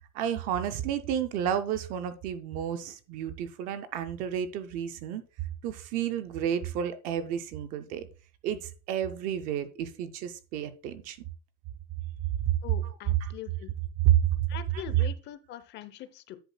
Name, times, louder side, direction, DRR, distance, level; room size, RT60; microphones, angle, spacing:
voice 1, 0.1-5.2 5.6-8.1 8.4-11.2 13.2-13.3 14.0-14.3, right 10 dB, 20° right, 0.3 m, -30 dB
voice 2, 12.6-13.7 14.5-16.4, left 12 dB, 25° left, 0.6 m, -42 dB
10.0 x 8.0 x 2.2 m
supercardioid pair, 140°, 44 cm